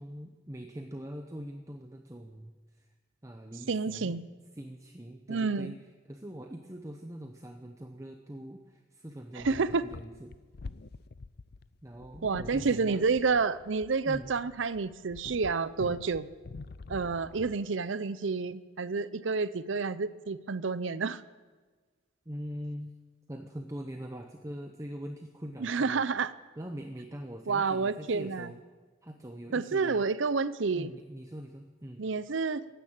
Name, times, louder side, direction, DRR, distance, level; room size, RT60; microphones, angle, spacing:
voice 1, 0.0-2.9 3.2-4.2 4.5-5.7 6.1-10.4 11.8-13.1 14.1-14.3 22.3-22.9 23.3-26.0 26.6-28.6 29.0-30.0 30.7-32.1, equal, 15° right, 4 dB, 0.7 m, -43 dB
voice 2, 3.7-4.2 5.3-5.7 9.4-9.8 12.2-16.3 16.9-21.2 25.6-26.3 27.5-28.5 29.5-30.9 32.0-32.6, right 4 dB, 70° right, 16 dB, 0.6 m, -29 dB
sound 1, 9.4-17.7, left 3 dB, 50° left, 0.5 m, -47 dB
15.0 x 10.0 x 8.8 m, 1.4 s
head